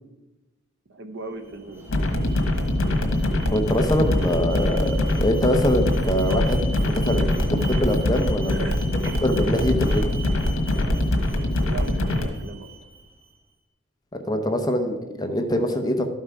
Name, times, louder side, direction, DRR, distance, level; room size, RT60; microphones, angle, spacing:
voice 1, 0.9-1.8 8.5-8.8 9.0-9.2 11.3-12.7, right 3 dB, 55° right, 7 dB, 0.8 m, -37 dB
Alarm, 1.3-13.3, right 2 dB, 10° right, 0.9 m, -41 dB
sound 1, 1.9-12.3, left 1 dB, 80° left, 1.4 m, -23 dB
voice 2, 3.5-8.6 9.2-10.0 14.3-16.1, left 1 dB, 20° left, 5 dB, 0.7 m, -24 dB
12.5 x 5.5 x 4.8 m, 1.1 s
head